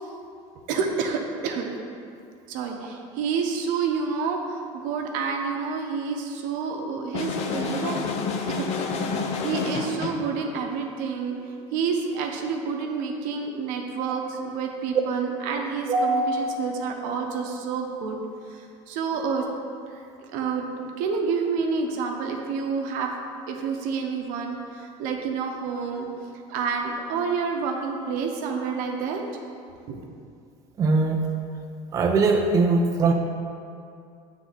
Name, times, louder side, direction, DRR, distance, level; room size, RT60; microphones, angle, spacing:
voice 1, 0.7-1.7 2.5-8.0 8.5-8.7 9.4-18.2 18.5-19.5 19.9-20.0 20.3-23.1 23.5-26.1 26.5-29.2 29.9-30.0, right 5 dB, 70° right, 2 dB, 0.8 m, -29 dB
sound 1, 7.1-10.3, left 4 dB, 50° left, 0.6 m, -29 dB
voice 2, 15.9-16.3 30.8-31.3 31.9-33.1, right 3 dB, 25° right, 2 dB, 0.4 m, -21 dB
7.5 x 3.5 x 4.0 m, 2.4 s
cardioid pair, 130°, 14 cm